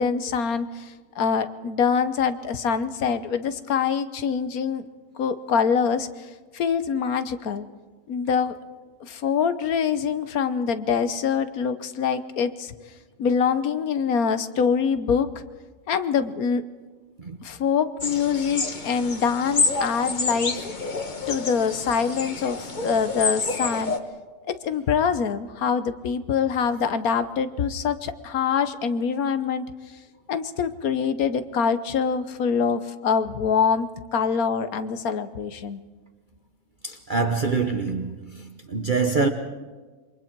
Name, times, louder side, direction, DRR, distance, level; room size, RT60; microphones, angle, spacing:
voice 1, 0.0-4.9 5.2-6.3 6.5-7.7 8.1-8.5 9.0-12.7 13.2-15.3 15.9-16.6 17.4-20.6 21.3-24.0 24.5-29.7 30.3-35.8, left 6 dB, 75° left, 1.4 m, -24 dB
sound 1, 18.0-24.0, left 3 dB, 35° left, 1.2 m, -28 dB
voice 2, 36.8-39.3, right 4 dB, 40° right, 1.0 m, -25 dB
27.5 x 23.5 x 4.6 m
omnidirectional pair, 1.6 m